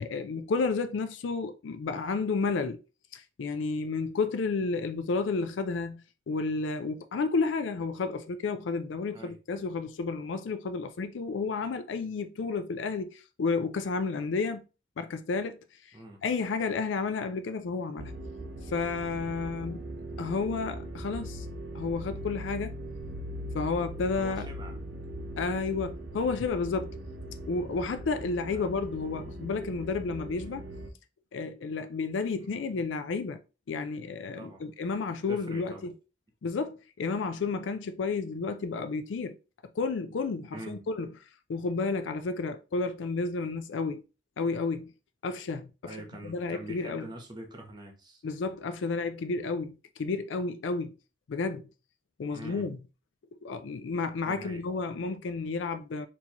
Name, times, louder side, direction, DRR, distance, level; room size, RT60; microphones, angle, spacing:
voice 1, 0.0-2.8 3.1-6.0 6.3-14.6 15.0-15.6 16.2-18.1 18.7-19.8 20.2-21.5 21.7-22.7 23.5-24.5 25.4-27.0 27.5-30.6 31.3-33.4 33.7-35.7 36.4-39.4 39.8-41.1 41.5-44.0 44.4-44.9 45.2-45.9 46.2-47.1 48.2-50.9 51.3-51.7 52.2-52.8 53.4-56.1, left 4 dB, 90° left, 0.4 m, -31 dB
sound 1, 18.0-30.9, right 1 dB, 80° right, 0.8 m, -40 dB
voice 2, 24.1-24.8 28.5-28.7 32.3-32.8 34.3-34.6 35.3-35.8 40.5-40.9 45.8-48.2 52.3-52.7 54.2-54.6, right 1 dB, 25° right, 0.9 m, -44 dB
4.5 x 2.8 x 2.9 m
head